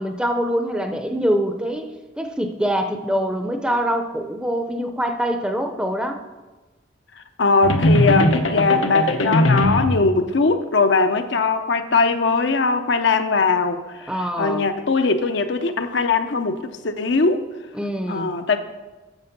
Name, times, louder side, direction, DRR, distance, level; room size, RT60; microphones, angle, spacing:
voice 1, 0.0-6.2 14.1-14.7 17.7-18.3, equal, 5° right, 6 dB, 0.6 m, -24 dB
voice 2, 7.4-14.1 14.4-17.5 18.1-18.6, left 4 dB, 65° left, 8 dB, 0.6 m, -20 dB
sound 1, 7.6-10.0, left 1 dB, 85° left, 1.0 m, -19 dB
8.8 x 7.2 x 5.9 m, 1.2 s
head